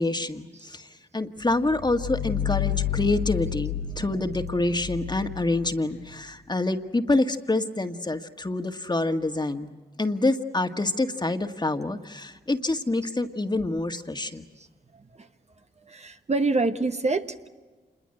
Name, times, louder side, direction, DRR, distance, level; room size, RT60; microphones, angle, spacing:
voice 1, 0.0-9.7 10.0-14.5, left 2 dB, 25° left, 6 dB, 1.9 m, -27 dB
sound 1, 1.5-6.2, left 10 dB, 80° left, 2.1 m, -31 dB
voice 2, 15.9-17.5, right 3 dB, 40° right, 7 dB, 1.3 m, -26 dB
27.0 x 22.0 x 7.9 m, 1.3 s
cardioid pair, 50°, 17 cm